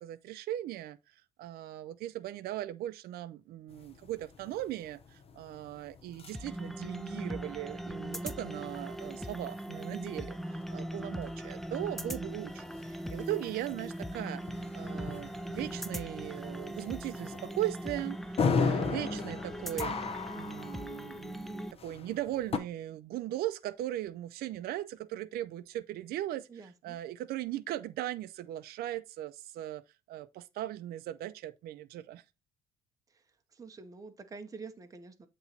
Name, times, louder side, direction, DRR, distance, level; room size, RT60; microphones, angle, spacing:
voice 1, 0.0-14.4 14.7-26.5 26.8-29.8 30.1-32.2, right 14 dB, 65° right, 0.4 m, -38 dB
sound 1, 3.7-22.6, left 5 dB, 35° left, 0.7 m, -39 dB
sound 2, 6.3-21.7, right 1 dB, ahead, 0.4 m, -40 dB
voice 2, 26.5-27.0 33.1-35.3, right 4 dB, 20° right, 0.8 m, -48 dB
8.2 x 3.0 x 4.0 m
cardioid pair, 110°, 17 cm